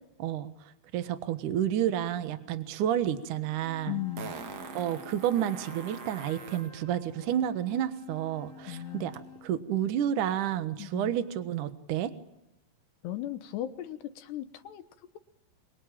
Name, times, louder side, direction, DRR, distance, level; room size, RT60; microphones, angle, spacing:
voice 1, 0.2-4.0 4.7-12.1, right 10 dB, 90° right, 11 dB, 1.7 m, -30 dB
Fart, 3.1-3.2 4.2-6.7 9.1-9.2, right 6 dB, 55° right, 1.9 m, -43 dB
sound 1, 3.3-9.5, left 5 dB, 35° left, 4.5 m, -50 dB
voice 2, 3.9-4.4 8.7-9.1 10.8-11.2 13.0-14.8, left 13 dB, 70° left, 11 dB, 2.8 m, -37 dB
28.0 x 23.5 x 8.9 m, 0.89 s
omnidirectional pair, 5.9 m